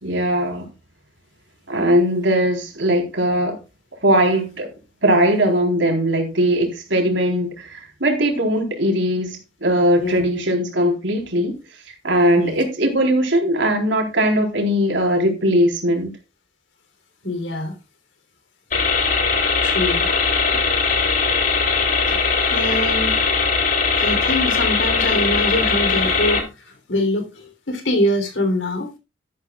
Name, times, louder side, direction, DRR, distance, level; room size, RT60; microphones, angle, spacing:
voice 1, 0.0-0.7 1.7-3.6 4.0-4.7 5.0-11.6 12.0-16.1, equal, 85° right, 3.8 m, -19 dB
voice 2, 17.2-17.7 19.6-20.1 22.1-22.2 22.5-23.2 23.9-28.9, left 1 dB, 85° left, 3.4 m, -24 dB
sound 1, 18.7-26.4, left 4 dB, 45° left, 3.2 m, -20 dB
12.5 x 12.0 x 2.4 m
head